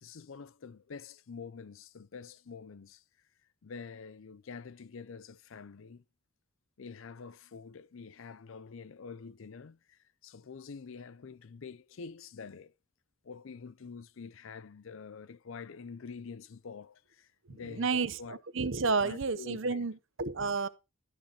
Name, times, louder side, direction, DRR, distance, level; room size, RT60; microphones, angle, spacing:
voice 1, 0.0-3.0 3.6-6.0 6.8-12.7 13.2-18.4 19.0-19.9, left 5 dB, 65° left, 0.5 m, -47 dB
voice 2, 17.5-20.7, right 4 dB, 60° right, 0.8 m, -31 dB
13.5 x 8.6 x 2.9 m
head